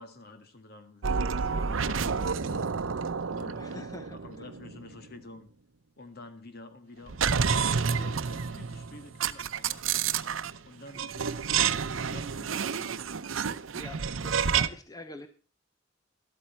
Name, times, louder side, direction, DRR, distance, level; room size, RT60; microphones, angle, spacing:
voice 1, 0.0-2.7 3.3-3.8 4.1-5.5 6.0-7.5 7.8-9.8 10.6-12.9, left 2 dB, 55° left, 8 dB, 1.8 m, -49 dB
sound 1, 1.0-5.0 7.1-10.6 10.9-14.7, right 6 dB, 85° right, 0.7 m, -29 dB
voice 2, 3.6-4.4 13.7-15.3, left 1 dB, 20° left, 8 dB, 0.8 m, -45 dB
13.0 x 12.5 x 4.4 m, 0.35 s
head